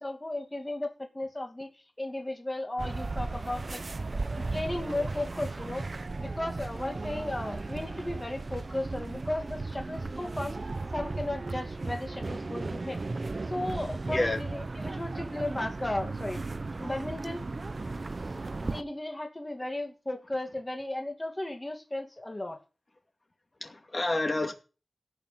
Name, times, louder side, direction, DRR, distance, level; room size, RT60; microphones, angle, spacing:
voice 1, 0.0-1.7 2.0-3.8 4.3-5.9 6.2-10.6 10.9-13.0 13.5-16.4 16.8-17.4 18.6-22.6, left 1 dB, 20° left, 2.4 m, -35 dB
sound 1, 2.8-18.8, right 3 dB, 50° right, 0.9 m, -36 dB
voice 2, 14.1-14.4 23.6-24.5, left 2 dB, 40° left, 2.4 m, -29 dB
17.0 x 6.6 x 7.5 m
wide cardioid pair, 80°, 0 cm